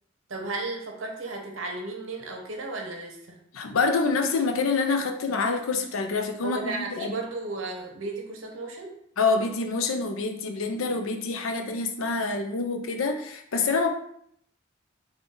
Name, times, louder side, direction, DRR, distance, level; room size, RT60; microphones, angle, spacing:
voice 1, 0.3-3.4 6.4-8.9, right 3 dB, 70° right, 2 dB, 0.8 m, -34 dB
voice 2, 3.5-7.1 9.2-13.9, left 4 dB, 80° left, 5 dB, 0.5 m, -26 dB
3.8 x 2.3 x 3.7 m, 0.71 s
head